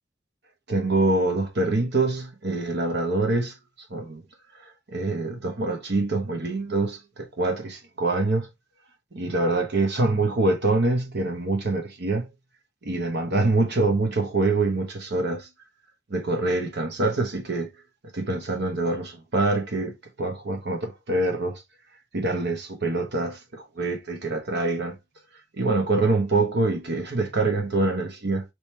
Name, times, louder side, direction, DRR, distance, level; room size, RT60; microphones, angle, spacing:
voice 1, 0.7-3.5 3.9-4.2 4.9-8.5 9.1-12.3 12.8-15.5 16.1-17.7 18.1-21.6 22.1-24.9 25.5-28.4, right 2 dB, 60° right, 1.2 m, -25 dB
5.2 x 3.1 x 3.2 m
head